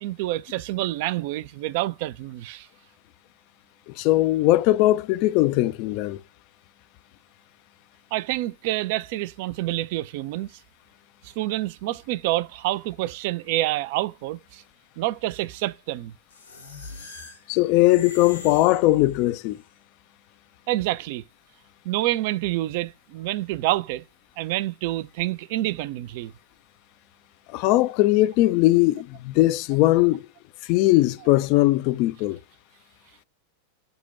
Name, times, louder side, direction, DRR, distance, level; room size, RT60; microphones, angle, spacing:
voice 1, 0.0-2.7 8.1-10.5 11.4-14.6 15.0-16.1 20.7-21.2 21.9-24.0 24.4-26.3, right 16 dB, 50° right, 0.3 m, -27 dB
voice 2, 3.9-6.2 17.5-19.6 27.5-30.2 30.7-32.4, left 17 dB, 45° left, 0.3 m, -20 dB
sound 1, 16.3-19.6, left 3 dB, 75° left, 1.4 m, -42 dB
5.4 x 2.2 x 4.0 m
figure-of-eight pair, 90°, 0 cm